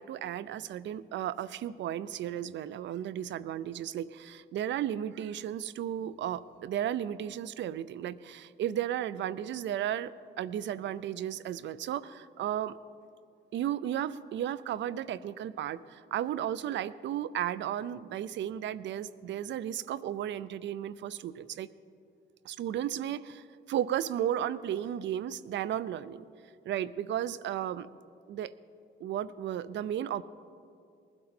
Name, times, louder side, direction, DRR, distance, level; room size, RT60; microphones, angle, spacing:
voice 1, 0.0-12.8 13.5-21.7 22.4-26.2 26.7-27.9 28.3-28.5 29.0-30.2, right 10 dB, 65° right, 18 dB, 0.5 m, -34 dB
20.0 x 12.0 x 4.3 m, 2.4 s
cardioid pair, 90°, 20 cm